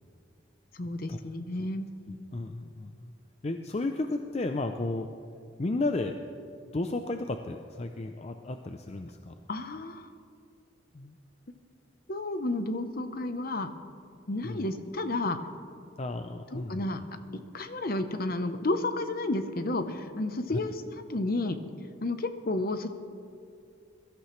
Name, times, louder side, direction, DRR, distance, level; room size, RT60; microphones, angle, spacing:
voice 1, 0.7-1.9 9.5-10.1 12.1-13.7 14.3-15.4 16.5-17.0 17.3-20.8 21.1-21.6 22.0-22.9, left 2 dB, 50° left, 9 dB, 0.8 m, -31 dB
voice 2, 2.1-3.1 3.4-5.1 5.6-6.1 6.7-9.3 10.9-11.1 14.4-14.7 16.0-16.9, left 2 dB, 35° left, 6 dB, 0.5 m, -33 dB
22.0 x 13.5 x 3.2 m, 2.4 s
head